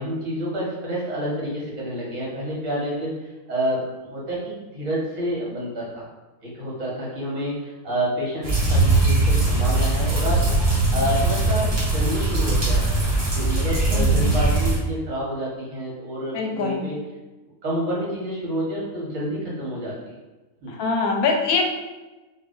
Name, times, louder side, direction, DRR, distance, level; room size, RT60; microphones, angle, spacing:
voice 1, 0.0-3.1 3.5-6.1 6.4-10.6 10.9-12.9 13.3-17.0 17.6-20.0 20.6-20.8, equal, 55° right, -5 dB, 1.5 m, -28 dB
sound 1, 8.4-14.8, right 2 dB, 25° right, 0.6 m, -20 dB
voice 2, 13.9-14.5 16.3-16.9 20.7-21.6, left 4 dB, 75° left, 2 dB, 1.0 m, -24 dB
3.1 x 2.5 x 3.7 m, 1.1 s
omnidirectional pair, 1.6 m